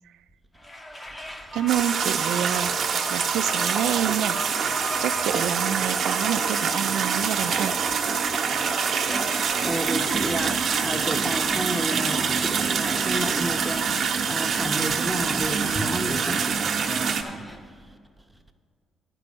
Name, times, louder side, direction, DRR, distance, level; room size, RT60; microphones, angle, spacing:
sound 1, 0.6-17.6, left 1 dB, 20° left, 0.9 m, -39 dB
voice 1, 1.5-2.7 3.1-7.8, right 11 dB, 80° right, 0.3 m, -28 dB
sound 2, 1.7-17.2, right 6 dB, 55° right, 0.9 m, -25 dB
voice 2, 9.6-16.5, right 1 dB, 5° right, 0.8 m, -31 dB
11.0 x 5.3 x 8.4 m
cardioid pair, 90°, 0 cm